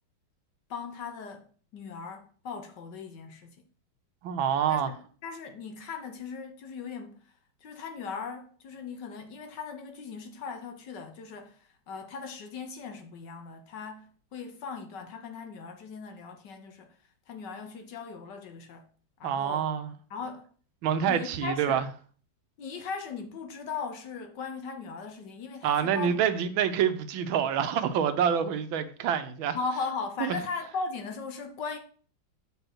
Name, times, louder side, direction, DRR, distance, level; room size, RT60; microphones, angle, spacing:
voice 1, 0.7-1.5 1.7-3.6 4.7-7.3 7.6-17.0 17.3-18.9 19.2-19.7 20.1-20.5 21.0-21.8 22.6-26.2 29.5-31.8, left 5 dB, 65° left, 1.4 m, -38 dB
voice 2, 4.2-4.9 19.2-19.9 20.8-21.9 25.6-29.6 30.2-30.4, right 8 dB, 80° right, 1.4 m, -27 dB
6.8 x 3.7 x 6.1 m
omnidirectional pair, 2.3 m